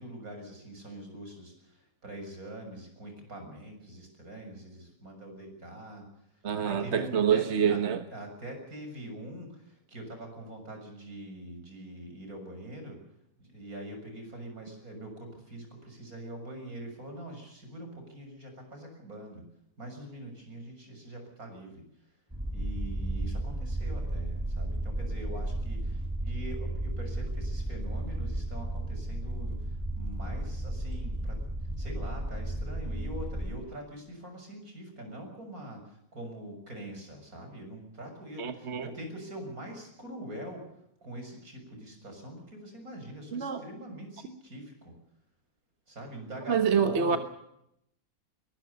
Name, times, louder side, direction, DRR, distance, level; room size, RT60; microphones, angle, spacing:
voice 1, 0.0-7.8 8.1-13.0 13.4-19.4 19.8-22.1 22.5-40.6 41.0-44.9 45.9-47.2, right 1 dB, 75° right, 4 dB, 7.3 m, -44 dB
voice 2, 6.4-8.0 38.4-38.9 43.3-43.6 46.5-47.2, right 7 dB, 50° right, 8 dB, 1.4 m, -26 dB
sound 1, 22.3-33.5, right 1 dB, 15° right, 4.3 m, -33 dB
22.5 x 20.5 x 6.8 m, 0.77 s
omnidirectional pair, 1.5 m